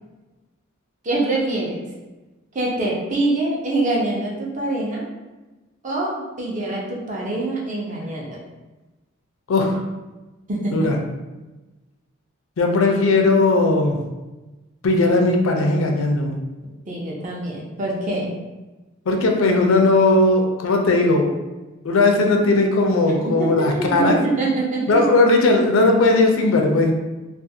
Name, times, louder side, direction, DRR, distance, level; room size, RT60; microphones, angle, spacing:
voice 1, 1.0-1.8 2.5-5.1 5.8-8.4 10.5-10.9 16.9-18.4 23.2-25.0, right 2 dB, 40° right, -3 dB, 0.6 m, -24 dB
voice 2, 9.5-9.8 10.7-11.0 12.6-14.0 14.8-16.4 19.1-21.3 21.8-24.2 24.9-26.9, left 2 dB, 80° left, 2 dB, 0.4 m, -17 dB
2.4 x 2.3 x 2.7 m, 1.1 s
head